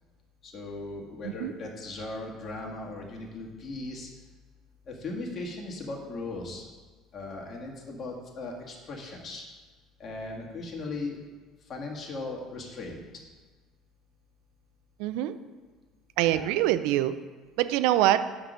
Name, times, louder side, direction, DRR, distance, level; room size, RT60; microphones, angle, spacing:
voice 1, 0.4-4.1 4.9-6.6 7.1-9.6 10.0-11.2 11.6-13.0 16.3-16.5, left 2 dB, 45° left, -1 dB, 1.9 m, -38 dB
voice 2, 15.0-15.3 16.2-17.2 17.6-18.3, right 13 dB, 75° right, 12 dB, 0.5 m, -24 dB
8.8 x 6.1 x 5.2 m, 1.4 s
hypercardioid pair, 75°, 0 cm